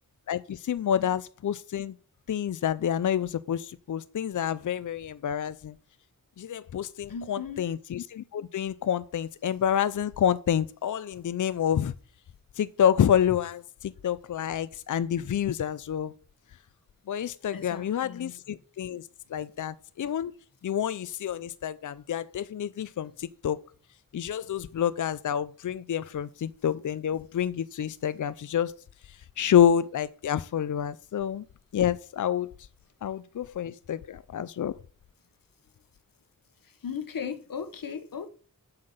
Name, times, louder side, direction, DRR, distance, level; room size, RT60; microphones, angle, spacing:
voice 1, 0.3-2.0 2.3-5.8 6.4-11.9 12.6-16.1 17.1-19.0 19.3-20.3 20.6-23.6 24.1-28.8 29.1-31.4 31.7-32.5 33.0-34.7, left 9 dB, 65° left, 0.5 m, -28 dB
voice 2, 7.1-7.7 17.5-18.4 36.6-38.3, left 6 dB, 85° left, 1.1 m, -37 dB
7.8 x 5.7 x 6.5 m
wide cardioid pair, 95°, 33 cm